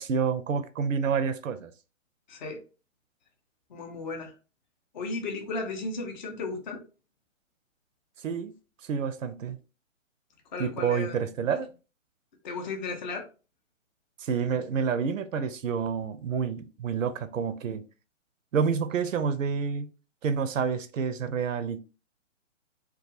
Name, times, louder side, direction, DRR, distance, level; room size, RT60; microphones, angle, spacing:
voice 1, 0.0-1.7 8.2-8.5 8.9-9.6 10.6-11.7 14.2-17.8 18.5-19.9 20.2-21.8, right 6 dB, 80° right, 0.5 m, -28 dB
voice 2, 2.3-2.6 3.7-4.3 4.9-6.8 10.5-11.2 11.5-11.6 12.4-13.3, left 3 dB, 35° left, 0.5 m, -35 dB
2.3 x 2.2 x 2.8 m
hypercardioid pair, 140°, 39 cm